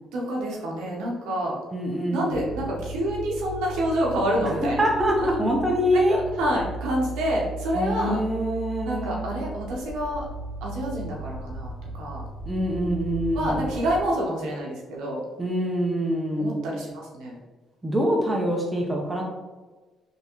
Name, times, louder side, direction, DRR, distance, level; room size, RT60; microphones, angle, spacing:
voice 1, 0.1-1.6 2.1-4.8 5.2-5.3 6.1-8.2 8.9-10.3 10.6-12.3 13.3-15.2 16.4-17.3, equal, 90° right, -2 dB, 0.8 m, -28 dB
voice 2, 1.7-2.5 4.4-6.2 7.7-9.3 12.5-13.6 15.4-16.6 17.8-19.2, equal, 15° right, -1 dB, 0.8 m, -25 dB
sound 1, 2.3-14.0, right 1 dB, 45° right, 1.0 m, -36 dB
3.5 x 2.9 x 2.9 m, 1.2 s
cardioid pair, 95°, 0 cm